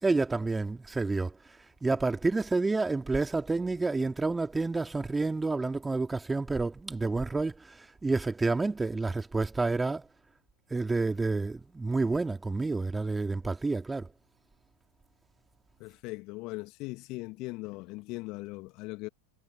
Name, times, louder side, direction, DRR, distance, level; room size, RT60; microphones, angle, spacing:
voice 1, 0.0-1.4 1.8-10.1 10.7-14.1, right 3 dB, 10° right, 2.8 m, -29 dB
voice 2, 15.8-19.1, left 23 dB, 40° left, 2.0 m, -39 dB
figure-of-eight pair, 90°, 0 cm